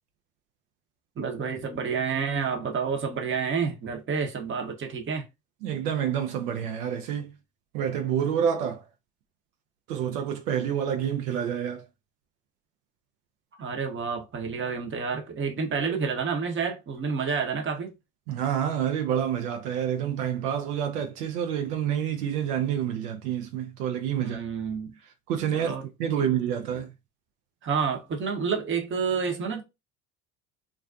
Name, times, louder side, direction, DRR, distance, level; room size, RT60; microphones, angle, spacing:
voice 1, 1.2-5.3 13.6-17.9 24.2-25.0 25.5-25.8 26.2-26.3 27.6-29.6, right 5 dB, 25° right, 0.8 m, -29 dB
voice 2, 5.6-7.4 7.7-8.9 9.9-11.9 18.3-24.4 25.3-26.9, right 9 dB, 75° right, 0.6 m, -28 dB
2.4 x 2.1 x 2.4 m
hypercardioid pair, 70°, 46 cm